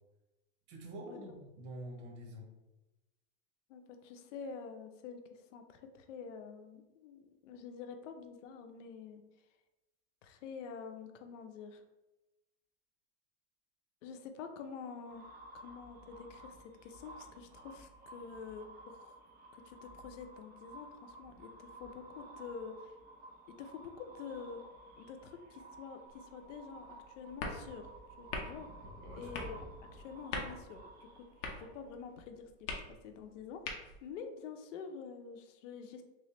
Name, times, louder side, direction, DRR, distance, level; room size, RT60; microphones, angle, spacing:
voice 1, 0.7-2.5 28.8-29.3, right 1 dB, 75° right, 0 dB, 1.2 m, -47 dB
voice 2, 3.7-9.2 10.2-11.8 14.0-15.3 15.5-19.1 19.5-22.9 23.6-24.6 25.0-27.9 28.2-28.7 29.2-30.8 31.2-36.0, left 6 dB, 90° left, 7 dB, 0.6 m, -48 dB
sound 1, 15.1-32.1, right 2 dB, 25° right, 0.6 m, -53 dB
sound 2, 26.0-34.2, left 3 dB, 50° left, 0.8 m, -45 dB
3.4 x 3.1 x 2.9 m, 1.0 s
supercardioid pair, 140°, 36 cm